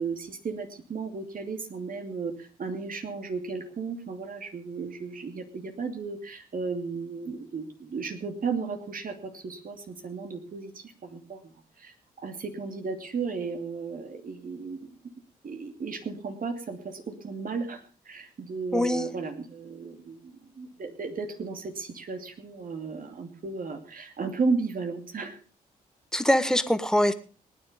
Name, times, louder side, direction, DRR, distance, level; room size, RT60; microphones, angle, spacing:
voice 1, 0.0-14.9 15.4-25.4, right 4 dB, 55° right, 6 dB, 2.8 m, -34 dB
voice 2, 18.7-19.1 26.1-27.1, left 1 dB, 5° left, 11 dB, 1.6 m, -23 dB
19.5 x 9.7 x 5.2 m, 0.37 s
supercardioid pair, 50°, 17 cm